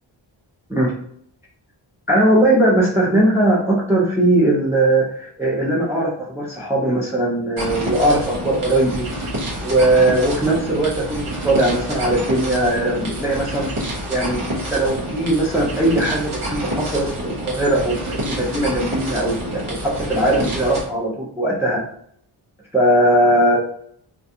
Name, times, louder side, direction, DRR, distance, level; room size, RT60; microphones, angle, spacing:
voice 1, 2.1-9.0 9.6-13.7 14.1-14.4 14.7-21.8 22.7-23.6, right 1 dB, 5° right, -3 dB, 0.4 m, -19 dB
sound 1, 7.6-20.8, equal, 90° right, 0.9 m, -28 dB
2.4 x 2.3 x 2.7 m, 0.66 s
wide cardioid pair, 95°, 48 cm